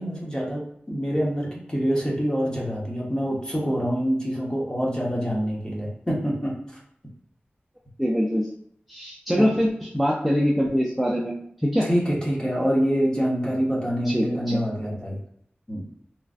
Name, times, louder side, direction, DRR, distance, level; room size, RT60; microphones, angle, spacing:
voice 1, 0.0-6.5 9.4-9.5 11.8-15.2 15.7-15.9, equal, 20° left, -4 dB, 1.0 m, -26 dB
voice 2, 8.0-8.5 8.9-9.7 9.9-11.3 11.6-11.9 14.1-14.6, equal, ahead, -4 dB, 0.4 m, -23 dB
3.1 x 2.5 x 2.4 m, 0.68 s
wide cardioid pair, 80°, 4 cm